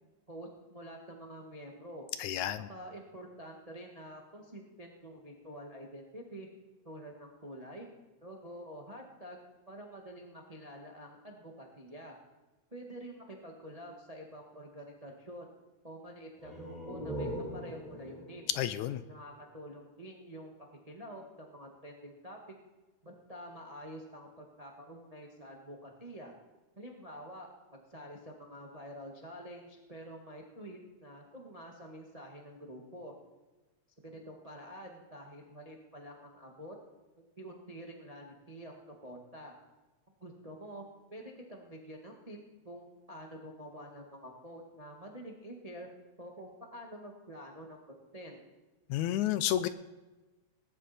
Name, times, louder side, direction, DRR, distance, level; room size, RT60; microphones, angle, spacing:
voice 1, 0.0-2.1 2.7-6.5 6.8-7.9 8.2-9.4 9.7-12.2 12.7-15.5 15.8-18.5 19.1-20.5 20.9-22.4 23.0-26.3 26.7-33.1 34.0-36.7 37.2-39.5 40.2-42.4 42.6-45.9 46.2-48.4, equal, 35° right, 1 dB, 0.6 m, -48 dB
voice 2, 2.2-2.7 18.6-19.0 48.9-49.7, left 12 dB, 80° left, 13 dB, 1.8 m, -31 dB
sound 1, 16.4-19.9, equal, ahead, 4.3 m, -42 dB
19.0 x 11.0 x 4.3 m, 1.2 s
omnidirectional pair, 3.6 m